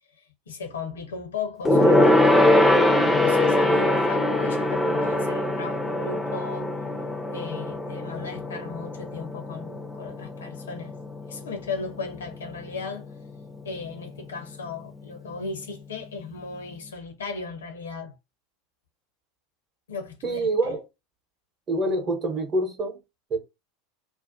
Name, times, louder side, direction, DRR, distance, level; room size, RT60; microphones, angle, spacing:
voice 1, 0.2-6.7 7.3-10.9 11.3-13.1 13.6-18.2 19.9-20.5, left 4 dB, 70° left, 0.6 m, -36 dB
Gong, 1.6-11.4 11.7-12.0 12.3-12.4, left 1 dB, 5° left, 0.4 m, -22 dB
voice 2, 20.2-20.8 21.7-23.0 23.3-23.4, right 2 dB, 30° right, 0.8 m, -26 dB
2.5 x 2.1 x 2.5 m
figure-of-eight pair, 80°, 0 cm